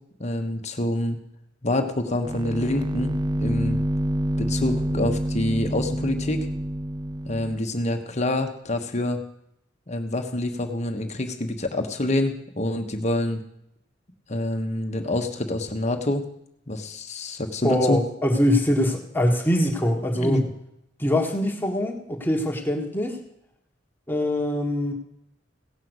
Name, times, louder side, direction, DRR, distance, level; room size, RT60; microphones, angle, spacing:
voice 1, 0.2-1.2 1.6-3.2 3.4-3.8 4.4-6.5 7.2-9.2 9.9-13.4 14.3-16.2 16.7-18.0 20.2-20.5, left 1 dB, 40° left, 5 dB, 1.4 m, -26 dB
sound 1, 2.3-7.6, right 1 dB, 25° right, 0.5 m, -27 dB
voice 2, 17.6-20.4 21.0-23.2 24.1-24.9, left 1 dB, 10° left, 2 dB, 1.6 m, -23 dB
16.5 x 5.8 x 8.0 m, 0.78 s
head